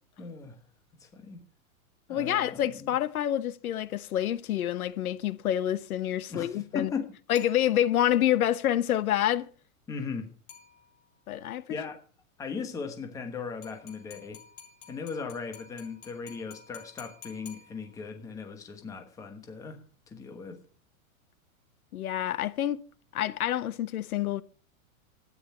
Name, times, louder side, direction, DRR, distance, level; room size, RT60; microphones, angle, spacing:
voice 1, 0.2-0.6 1.0-1.4 2.1-2.9 6.3-7.1 9.9-10.3 11.7-12.0 12.4-14.4 14.9-19.8 20.1-20.6, left 5 dB, 10° left, 1.2 m, -38 dB
voice 2, 2.1-6.9 7.3-9.5 11.3-11.8 21.9-22.8 23.1-24.4, left 11 dB, 85° left, 1.2 m, -27 dB
sound 1, 7.4-8.2 10.5-11.2 13.6-18.2, left 7 dB, 55° left, 6.5 m, -52 dB
13.0 x 9.8 x 5.7 m
supercardioid pair, 175°, 42 cm